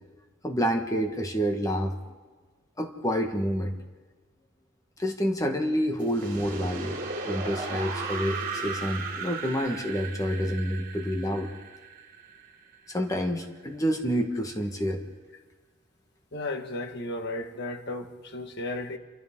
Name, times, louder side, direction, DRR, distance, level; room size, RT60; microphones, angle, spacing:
voice 1, 0.4-2.0 2.8-3.8 5.0-11.5 12.9-15.0, equal, 15° left, 4 dB, 1.4 m, -28 dB
sound 1, 6.0-12.9, right 4 dB, 45° right, 3.1 m, -36 dB
voice 2, 16.3-19.0, left 2 dB, 55° left, 6 dB, 1.6 m, -34 dB
28.0 x 25.0 x 3.7 m, 1.3 s
head